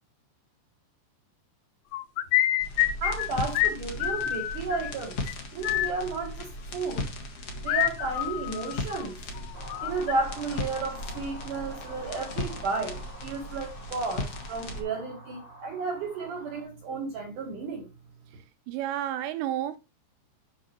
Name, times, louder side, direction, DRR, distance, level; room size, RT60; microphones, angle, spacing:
sound 1, 1.9-3.3 3.5-3.7 4.0-4.9 5.3-5.4 5.6-5.9 7.7-9.1 9.4-10.1, left 14 dB, 80° left, 2.8 m, -27 dB
sound 2, 2.6-14.8, left 2 dB, 65° left, 1.5 m, -37 dB
voice 1, 3.0-5.2 5.5-7.0 7.6-9.2 9.8-17.9, right 4 dB, 65° right, 2.1 m, -33 dB
sound 3, 9.5-16.6, equal, 25° right, 0.7 m, -47 dB
voice 2, 18.7-19.8, right 12 dB, 85° right, 2.5 m, -30 dB
8.8 x 5.7 x 2.9 m
omnidirectional pair, 5.2 m